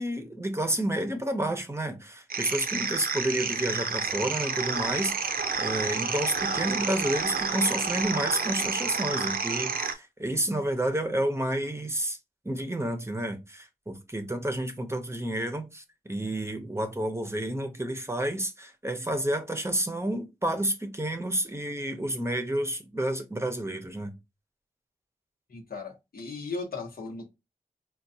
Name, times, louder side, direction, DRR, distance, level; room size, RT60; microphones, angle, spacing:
voice 1, 0.0-5.1 5.6-12.2 12.4-24.1, right 1 dB, 15° right, 0.6 m, -30 dB
sound 1, 2.3-9.9, right 5 dB, 85° right, 0.5 m, -30 dB
voice 2, 25.5-27.3, left 3 dB, 90° left, 0.9 m, -37 dB
4.4 x 2.3 x 2.6 m
wide cardioid pair, 90°, 15 cm